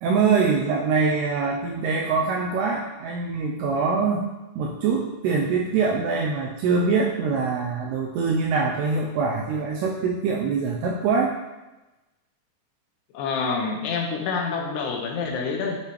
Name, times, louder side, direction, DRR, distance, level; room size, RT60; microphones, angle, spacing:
voice 1, 0.0-4.3 4.6-11.4, right 4 dB, 90° right, 0 dB, 2.3 m, -24 dB
voice 2, 13.1-15.8, left 5 dB, 75° left, 1 dB, 2.7 m, -27 dB
10.5 x 5.7 x 3.2 m, 1.1 s
omnidirectional pair, 5.4 m